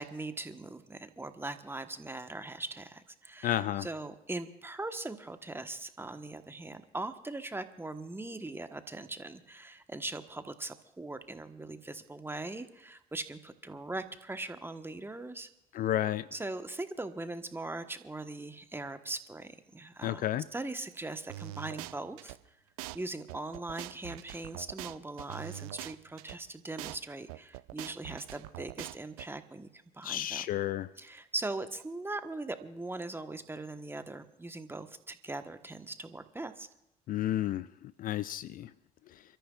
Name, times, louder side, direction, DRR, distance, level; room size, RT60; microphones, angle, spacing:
voice 1, 0.0-15.5 16.3-20.3 20.5-22.4 22.9-30.4 31.0-36.7, right 2 dB, 10° right, 1.3 m, -40 dB
voice 2, 3.4-3.9 15.7-16.3 20.0-20.5 30.0-30.9 37.1-38.7 39.1-39.2, left 12 dB, 50° left, 0.4 m, -32 dB
sound 1, 21.3-22.4 22.8-23.0 23.3-26.4 26.8-27.0 27.3-29.3, right 16 dB, 75° right, 0.5 m, -43 dB
29.0 x 13.5 x 2.5 m
hypercardioid pair, 55°, 19 cm